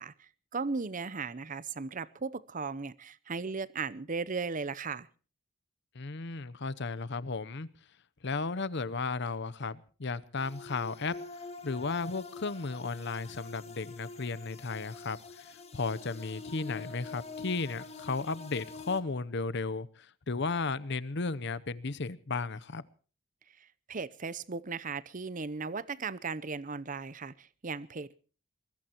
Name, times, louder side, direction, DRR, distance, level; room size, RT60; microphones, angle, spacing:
voice 1, 0.0-5.1 23.9-28.2, right 4 dB, 40° right, 19 dB, 0.7 m, -37 dB
voice 2, 5.9-7.7 8.2-11.1 11.6-19.9 20.3-22.8, left 4 dB, 55° left, 16 dB, 0.8 m, -34 dB
sound 1, 10.4-19.0, left 4 dB, 30° left, 1.9 m, -46 dB
23.0 x 21.0 x 3.0 m, 0.38 s
head